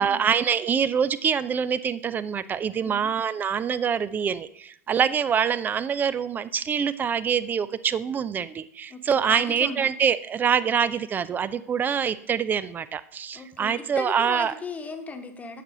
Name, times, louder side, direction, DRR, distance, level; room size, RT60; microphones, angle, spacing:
voice 1, 0.0-14.5, right 7 dB, 20° right, 16 dB, 0.5 m, -25 dB
voice 2, 8.9-9.9 13.3-15.6, left 3 dB, 15° left, 6 dB, 1.2 m, -37 dB
9.2 x 6.0 x 6.5 m, 0.67 s
figure-of-eight pair, 90°, 9 cm